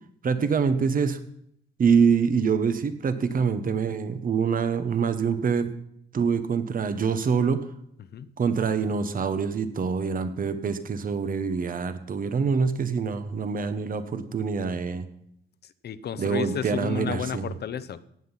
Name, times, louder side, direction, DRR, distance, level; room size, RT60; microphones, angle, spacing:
voice 1, 0.2-1.2 1.8-5.7 6.1-7.6 8.4-15.1 16.2-17.5, right 6 dB, 45° right, 10 dB, 1.2 m, -25 dB
voice 2, 15.8-18.0, left 8 dB, 55° left, 14 dB, 0.9 m, -32 dB
17.0 x 8.0 x 5.7 m, 0.73 s
cardioid pair, 90°, 20 cm